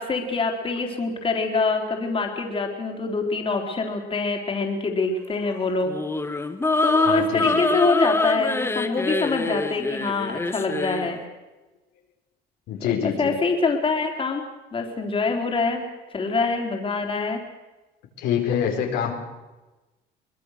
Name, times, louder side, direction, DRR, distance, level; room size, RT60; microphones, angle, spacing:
voice 1, 0.0-6.0 6.8-11.2 12.8-14.4 14.7-15.8 16.1-17.4, left 3 dB, 30° left, 3 dB, 3.9 m, -25 dB
sound 1, 5.9-11.1, left 2 dB, 15° left, 1.6 m, -25 dB
voice 2, 7.0-7.7 12.7-13.4 18.2-19.1, left 8 dB, 85° left, 1 dB, 4.5 m, -26 dB
24.0 x 21.0 x 6.7 m, 1.1 s
cardioid pair, 110°, 17 cm